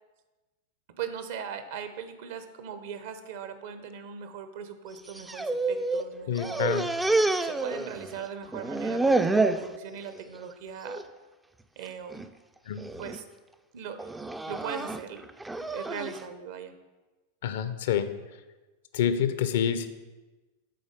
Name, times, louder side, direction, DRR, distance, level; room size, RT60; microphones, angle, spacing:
voice 1, 1.0-6.9 7.4-11.0 11.8-12.3 13.0-13.2 13.7-14.1 14.4-15.3 15.6-16.7, right 7 dB, 55° right, 9 dB, 0.7 m, -39 dB
sound 1, 5.0-6.1 6.4-8.2 8.5-9.7 10.2-10.5 10.9-11.0 11.9-12.3 12.8-13.2 14.0-16.2, right 2 dB, 5° right, 0.3 m, -28 dB
voice 2, 6.3-6.9 12.7-12.8 17.4-18.1 18.9-19.9, left 8 dB, 55° left, 11 dB, 0.5 m, -27 dB
7.7 x 4.1 x 5.1 m, 1.2 s
figure-of-eight pair, 90°, 0 cm